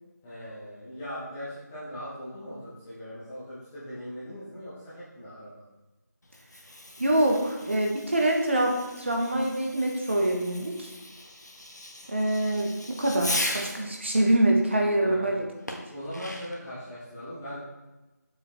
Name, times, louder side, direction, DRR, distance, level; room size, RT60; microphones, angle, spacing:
voice 1, 0.2-5.6 15.0-15.4 15.9-17.6, equal, 5° left, -13 dB, 0.9 m, -40 dB
Fireworks, 6.2-13.9 15.7-16.7, left 1 dB, 65° left, 1.4 m, -38 dB
voice 2, 7.0-10.9 12.1-15.5, right 1 dB, 40° right, 1 dB, 1.3 m, -25 dB
7.4 x 6.8 x 3.5 m, 1.1 s
figure-of-eight pair, 170°, 10 cm